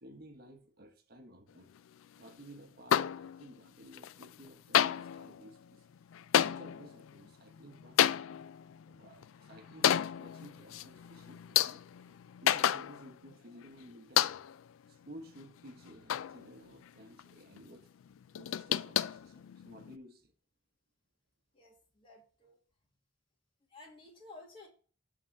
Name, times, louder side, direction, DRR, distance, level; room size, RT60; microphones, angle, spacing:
voice 1, 0.0-1.7 2.2-5.9 6.4-8.4 8.8-11.8 12.4-14.4 14.9-17.9 18.3-20.3, equal, 50° right, 1.1 m, -54 dB
sound 1, 2.9-3.7 3.9-4.5 4.7-13.3 13.6-13.7 14.2-14.7 15.2-16.9 17.2-17.3 17.6-17.7 18.0-20.0, left 10 dB, 90° left, 0.3 m, -32 dB
voice 2, 21.5-22.6 23.7-24.7, left 2 dB, 25° left, 1.8 m, -54 dB
7.6 x 3.7 x 6.3 m
head